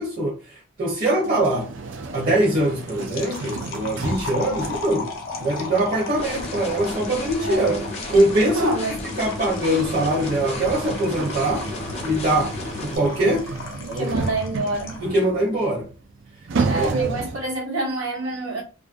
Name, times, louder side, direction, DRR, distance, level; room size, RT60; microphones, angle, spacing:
voice 1, 0.0-1.7 2.1-5.1 5.4-8.7 9.2-11.7 12.0-13.5 13.9-14.1 15.0-15.9 16.7-17.2, right 1 dB, 45° right, 0.8 m, -22 dB
sound 1, 1.2-17.6, right 4 dB, 60° right, 0.4 m, -33 dB
sound 2, 2.5-15.1, left 4 dB, 70° left, 0.7 m, -37 dB
sound 3, 6.2-13.0, left 2 dB, 30° left, 0.5 m, -33 dB
voice 2, 7.4-7.9 8.5-8.9 13.8-15.0 16.7-18.6, right 2 dB, 85° right, 1.0 m, -27 dB
2.5 x 2.1 x 2.5 m
head